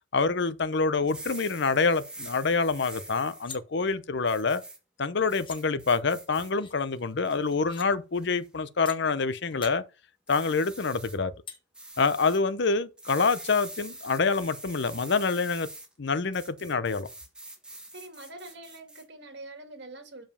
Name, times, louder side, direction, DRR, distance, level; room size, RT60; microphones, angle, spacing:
voice 1, 0.1-4.6 5.0-9.8 10.3-11.3 12.0-15.7 16.0-17.1, left 4 dB, 60° left, 0.7 m, -26 dB
sound 1, 1.0-3.4 4.3-4.8 5.3-6.5 7.0-7.5 8.1-8.5 10.3-11.2 11.7-12.4 13.0-15.9 16.3-19.0, right 1 dB, 5° right, 1.6 m, -44 dB
sound 2, 2.5-2.6 2.9-3.6 5.0-5.1 5.4-5.6 6.5-6.7 7.5-7.9 8.9-9.0 9.4-9.7 11.5-11.6, left 6 dB, 25° left, 1.5 m, -44 dB
voice 2, 17.9-20.3, right 2 dB, 60° right, 2.2 m, -44 dB
7.1 x 5.2 x 5.6 m
head